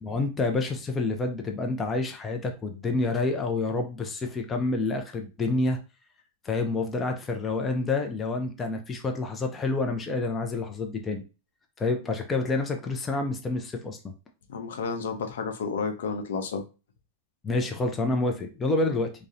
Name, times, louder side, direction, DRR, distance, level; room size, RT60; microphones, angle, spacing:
voice 1, 0.0-5.8 6.4-11.2 11.8-14.1 17.4-19.1, left 3 dB, 15° left, 0.4 m, -28 dB
voice 2, 14.5-16.6, left 5 dB, 85° left, 0.5 m, -31 dB
2.6 x 2.0 x 2.4 m
supercardioid pair, 145°, 0 cm